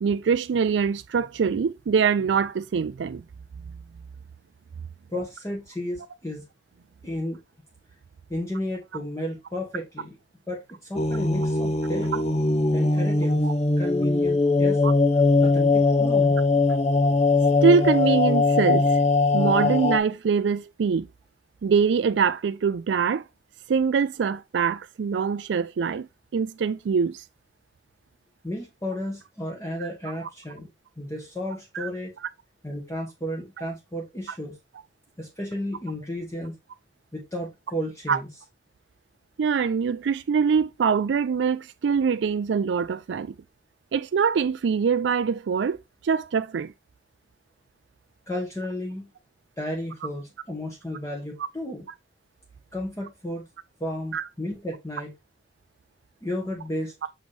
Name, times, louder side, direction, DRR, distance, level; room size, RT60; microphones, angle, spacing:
voice 1, 0.0-3.2 13.4-13.5 14.8-14.9 17.6-19.0 19.3-21.1 21.6-23.2 23.7-27.2 30.2-30.3 31.7-31.9 38.1-38.2 39.4-43.3 43.9-45.8 46.0-46.7 54.1-54.3 57.0-57.1, right 6 dB, 75° right, 0.4 m, -23 dB
voice 2, 5.1-6.4 7.0-7.4 8.3-10.2 10.5-12.2 12.7-13.5 13.8-14.8 15.4-16.4 28.4-30.7 31.0-32.1 32.6-34.6 35.2-36.5 37.1-38.3 48.3-49.1 49.6-51.8 52.7-53.5 53.8-55.1 56.2-57.1, left 1 dB, 20° left, 1.4 m, -33 dB
sound 1, 10.9-20.0, left 3 dB, 40° left, 0.6 m, -21 dB
6.4 x 5.3 x 3.2 m
head